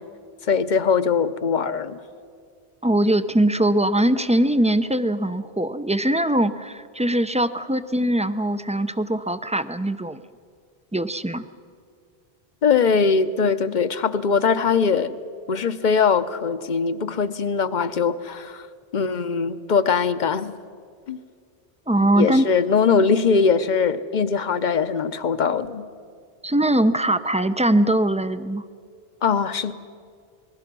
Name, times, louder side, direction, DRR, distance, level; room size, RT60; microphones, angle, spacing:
voice 1, 0.5-2.0 12.6-15.1 15.5-18.7 18.9-20.5 21.1-21.2 22.1-25.9 29.2-29.7, left 5 dB, 50° left, 13 dB, 0.9 m, -21 dB
voice 2, 2.8-10.2 10.9-11.4 21.9-22.5 26.4-28.6, right 1 dB, 10° right, 12 dB, 0.4 m, -21 dB
27.5 x 20.5 x 6.1 m, 2.2 s
omnidirectional pair, 1.0 m